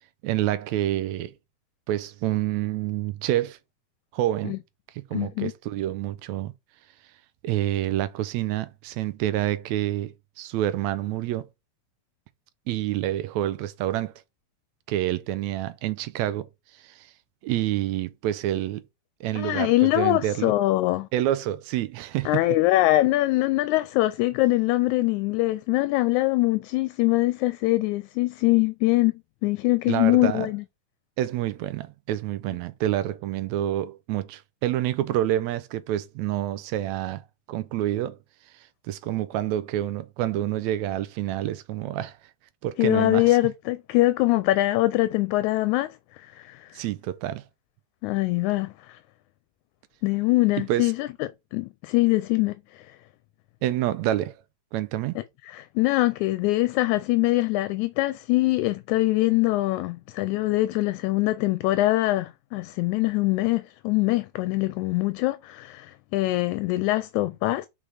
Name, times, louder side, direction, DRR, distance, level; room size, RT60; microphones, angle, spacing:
voice 1, 0.2-1.3 1.9-3.6 4.1-4.6 5.0-6.5 7.4-11.5 12.7-14.1 14.9-17.1 17.4-18.8 19.2-20.5 21.1-22.4 29.9-30.5 31.2-37.2 37.5-38.2 38.5-42.2 42.6-43.4 46.7-47.4 50.7-50.9 53.6-54.3 54.7-55.2, right 13 dB, 80° right, 1.7 m, -28 dB
voice 2, 5.1-5.5 19.4-21.1 22.3-29.1 29.4-30.6 42.8-46.8 48.0-49.0 50.0-53.0 55.2-67.7, left 18 dB, 80° left, 1.9 m, -23 dB
5.3 x 4.7 x 4.9 m
omnidirectional pair, 3.5 m